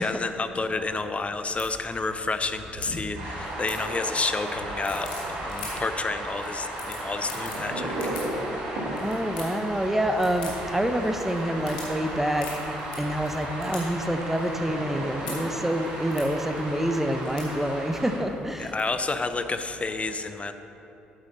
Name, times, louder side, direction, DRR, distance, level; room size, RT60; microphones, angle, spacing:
voice 1, 0.0-8.0 8.5-8.6 18.6-20.5, left 3 dB, 30° left, 9 dB, 0.6 m, -30 dB
sound 1, 0.5-19.9, left 2 dB, 85° left, 1.6 m, -44 dB
sound 2, 3.1-18.2, right 1 dB, 75° right, 2.3 m, -34 dB
voice 2, 9.0-12.5 13.0-18.8, right 1 dB, 5° right, 6 dB, 0.8 m, -27 dB
9.0 x 8.1 x 4.1 m, 2.9 s
hypercardioid pair, 50°, 4 cm